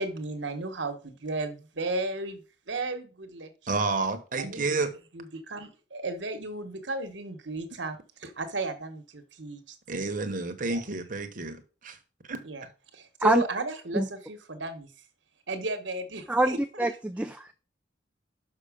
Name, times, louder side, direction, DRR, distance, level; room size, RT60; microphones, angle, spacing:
voice 1, 0.0-3.8 4.3-4.8 5.1-10.0 10.6-10.8 12.4-12.6 12.9-14.9 15.5-16.9, right 2 dB, 75° right, 1.3 m, -34 dB
voice 2, 3.7-4.9 9.9-12.0 12.3-12.4, right 3 dB, 45° right, 1.1 m, -30 dB
voice 3, 16.3-17.5, right 1 dB, 5° right, 0.4 m, -25 dB
6.2 x 5.7 x 5.0 m
head